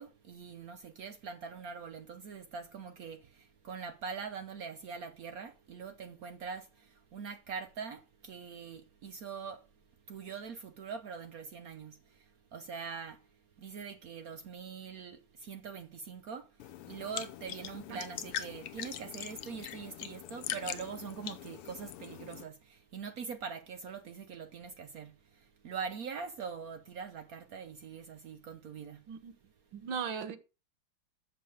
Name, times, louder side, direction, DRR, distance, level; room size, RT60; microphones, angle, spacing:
voice 1, 0.0-9.6 10.1-12.2 12.5-13.2 13.6-16.5 16.9-29.0, right 6 dB, 80° right, 0.8 m, -43 dB
sound 1, 16.6-22.4, left 12 dB, 90° left, 1.8 m, -42 dB
voice 2, 29.7-30.4, right 6 dB, 65° right, 1.7 m, -37 dB
8.0 x 6.8 x 4.9 m
omnidirectional pair, 2.4 m